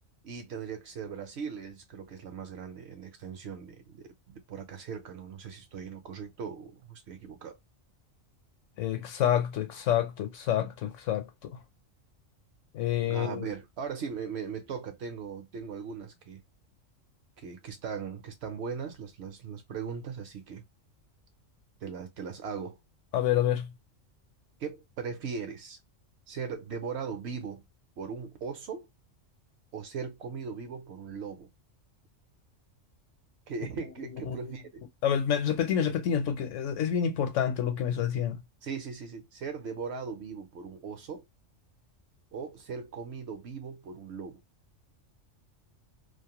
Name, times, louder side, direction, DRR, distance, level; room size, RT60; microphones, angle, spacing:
voice 1, 0.2-7.6 13.0-16.4 17.4-20.6 21.8-22.8 24.6-25.8 26.3-27.6 28.0-28.9 29.7-31.5 33.5-34.8 38.6-41.3 42.3-44.4, right 6 dB, 65° right, 0.8 m, -39 dB
voice 2, 8.8-11.6 12.7-13.5 23.1-23.7 34.0-34.5 35.0-38.4, left 9 dB, 75° left, 1.0 m, -28 dB
2.5 x 2.0 x 2.8 m
omnidirectional pair, 1.3 m